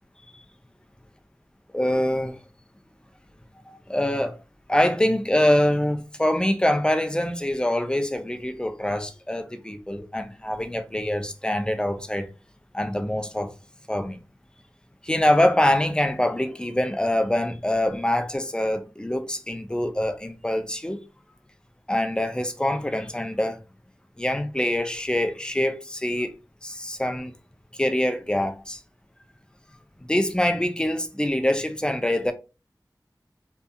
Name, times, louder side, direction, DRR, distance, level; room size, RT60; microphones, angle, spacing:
voice 1, 1.7-2.4 3.7-4.4 4.7-12.3 12.7-13.5 13.9-14.2 15.0-21.0 21.9-23.6 24.2-26.3 26.6-27.3 27.7-28.8 30.0-32.3, left 1 dB, 10° left, 0.4 m, -24 dB
2.7 x 2.4 x 2.2 m
wide cardioid pair, 45°, 7 cm